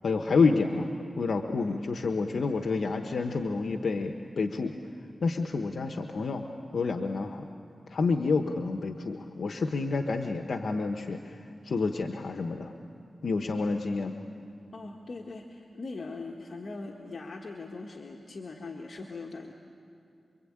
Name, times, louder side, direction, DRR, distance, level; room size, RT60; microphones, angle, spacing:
voice 1, 0.0-0.9 1.2-4.7 5.2-6.5 6.7-7.5 7.9-12.7 13.2-14.2, left 4 dB, 75° left, 5 dB, 1.0 m, -29 dB
voice 2, 14.7-19.5, left 3 dB, 55° left, 0 dB, 1.6 m, -41 dB
26.5 x 23.5 x 8.8 m, 2.5 s
wide cardioid pair, 110°, 0 cm